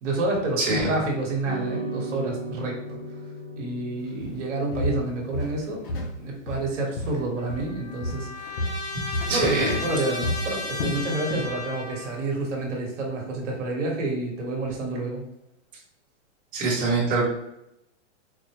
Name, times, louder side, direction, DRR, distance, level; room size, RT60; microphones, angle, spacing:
voice 1, 0.0-3.0 3.6-5.9 6.2-8.7 9.3-15.2, right 2 dB, 75° right, -1 dB, 1.3 m, -29 dB
voice 2, 0.6-0.9 8.9-9.7 16.5-17.2, right 3 dB, 40° right, -4 dB, 1.1 m, -25 dB
sound 1, 1.4-10.0, right 1 dB, 10° right, 1.0 m, -39 dB
Walk footsteps, 4.2-4.4 4.8-6.2 6.5-7.8 8.0-11.6 11.9-12.1 12.6-12.7, left 1 dB, 50° left, 0.6 m, -31 dB
Trumpet, 7.4-12.2, left 2 dB, 10° left, 0.6 m, -35 dB
4.2 x 2.1 x 2.9 m, 0.82 s
supercardioid pair, 175°, 37 cm